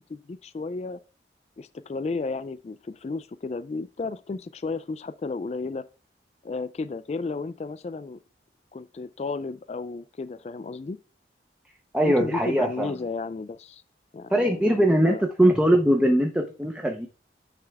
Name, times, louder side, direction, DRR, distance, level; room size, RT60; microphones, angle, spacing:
voice 1, 0.1-1.0 1.6-5.9 6.4-8.2 8.7-11.0 12.0-13.8 14.1-15.3, left 3 dB, 35° left, 0.3 m, -33 dB
voice 2, 11.9-12.9 14.3-17.1, right 1 dB, 5° right, 0.6 m, -21 dB
9.5 x 3.4 x 3.5 m
head